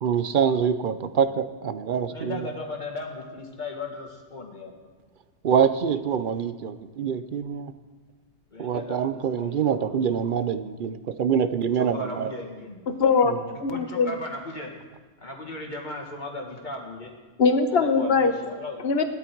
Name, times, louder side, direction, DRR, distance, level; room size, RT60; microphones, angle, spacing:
voice 1, 0.0-2.5 5.4-7.7 8.6-12.3 13.3-13.4, right 7 dB, 55° right, 12 dB, 0.7 m, -25 dB
voice 2, 2.1-4.9 8.5-10.3 11.8-12.8 13.7-14.7 15.2-17.1 17.7-18.8, left 2 dB, 40° left, 1 dB, 2.0 m, -37 dB
voice 3, 12.9-14.2 17.4-18.3 18.8-19.0, left 4 dB, 60° left, 7 dB, 1.3 m, -21 dB
17.0 x 12.5 x 4.6 m, 1.4 s
omnidirectional pair, 1.2 m